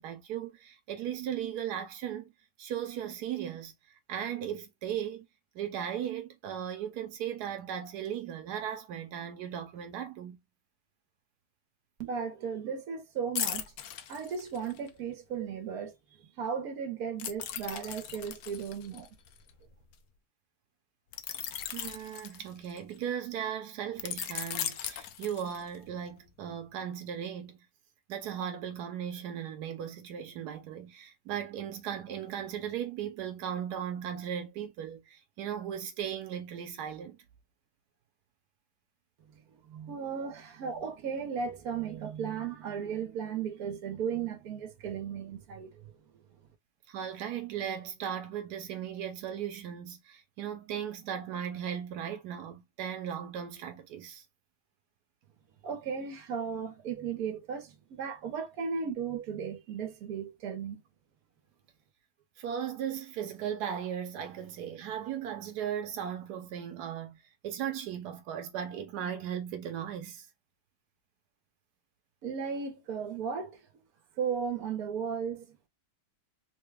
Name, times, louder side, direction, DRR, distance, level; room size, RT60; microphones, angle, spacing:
voice 1, 0.0-2.3 2.6-3.7 4.1-5.3 5.5-10.4 21.6-27.6 28.1-37.2 40.2-40.4 46.9-54.2 62.4-70.3, right 9 dB, 90° right, 1.2 m, -37 dB
voice 2, 12.0-13.7 14.1-16.0 16.4-19.1 39.7-45.9 55.6-60.8 72.2-73.6 74.2-75.6, right 6 dB, 70° right, 1.3 m, -35 dB
sound 1, 13.4-14.9 17.2-19.9 21.1-23.0 24.0-25.8 26.3-26.5, left 10 dB, 70° left, 1.0 m, -38 dB
3.7 x 2.2 x 3.2 m
omnidirectional pair, 1.7 m